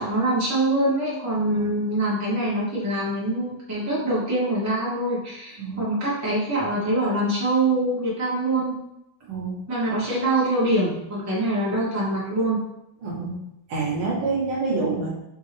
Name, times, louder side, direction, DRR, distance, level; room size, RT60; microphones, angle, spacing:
voice 1, 0.0-8.8 9.7-12.6, right 1 dB, 10° right, -7 dB, 0.9 m, -24 dB
voice 2, 9.3-9.6 13.0-13.3 13.7-15.1, right 4 dB, 60° right, -4 dB, 1.6 m, -27 dB
4.0 x 3.7 x 3.0 m, 0.84 s
omnidirectional pair, 2.4 m